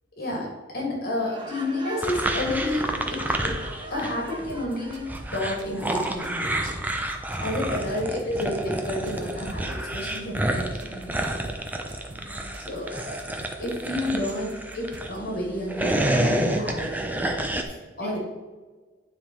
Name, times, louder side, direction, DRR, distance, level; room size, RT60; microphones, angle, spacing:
voice 1, 0.2-0.5 0.7-3.5 3.9-6.7 7.4-11.3 12.7-13.2 13.6-17.2 18.0-18.2, left 1 dB, 55° left, -3 dB, 2.8 m, -30 dB
Laughter, 1.2-5.2, right 2 dB, 25° right, 1.1 m, -42 dB
sound 1, 2.0-4.2 4.5-15.1 15.6-17.6, right 1 dB, 10° right, 0.7 m, -29 dB
sound 2, 4.3-15.2, right 2 dB, 70° right, 1.1 m, -47 dB
voice 2, 7.5-7.8 12.1-12.9 13.9-14.0 17.6-18.2, left 1 dB, 10° left, -7 dB, 2.1 m, -48 dB
9.5 x 5.2 x 4.6 m, 1.3 s
head